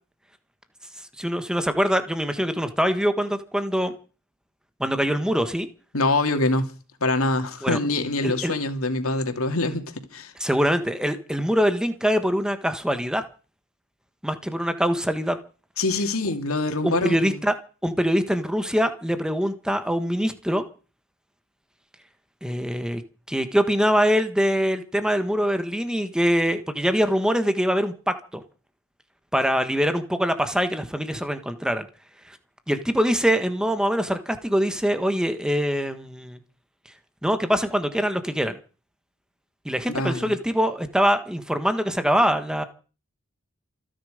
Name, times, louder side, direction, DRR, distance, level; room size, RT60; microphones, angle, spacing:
voice 1, 1.2-3.9 4.8-5.7 7.6-7.8 8.2-8.5 10.4-13.2 14.2-15.4 16.8-17.5 17.8-20.6 22.4-23.0 23.3-28.4 29.3-31.9 32.7-36.4 37.2-38.6 39.6-42.6, equal, 5° right, 1.5 m, -23 dB
voice 2, 5.9-6.7 7.0-10.3 15.8-17.4 39.9-40.3, left 2 dB, 75° left, 2.7 m, -24 dB
27.0 x 10.0 x 5.2 m
head